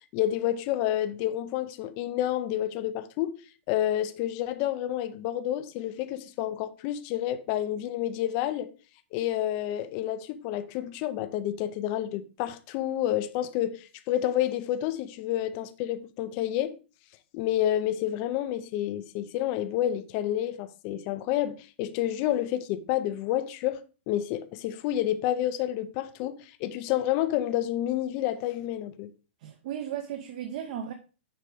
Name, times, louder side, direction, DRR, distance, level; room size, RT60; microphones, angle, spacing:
voice 1, 0.1-3.4 3.7-8.7 9.1-16.7 17.3-29.1, left 12 dB, 25° left, 0.5 m, -29 dB
voice 2, 29.4-30.9, right 10 dB, 35° right, 0.7 m, -35 dB
6.8 x 4.8 x 4.9 m
hypercardioid pair, 175°, 6 cm